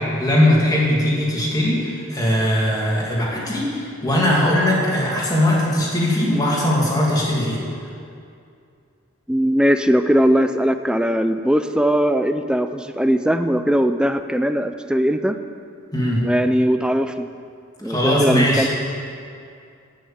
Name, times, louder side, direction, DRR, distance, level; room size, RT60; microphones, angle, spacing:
voice 1, 0.0-7.6 15.9-16.2 17.8-18.7, left 1 dB, 20° left, -5 dB, 2.6 m, -20 dB
voice 2, 9.3-15.4 16.2-17.3 17.8-18.7, equal, 5° right, 9 dB, 0.4 m, -19 dB
12.0 x 6.5 x 8.8 m, 2.5 s
head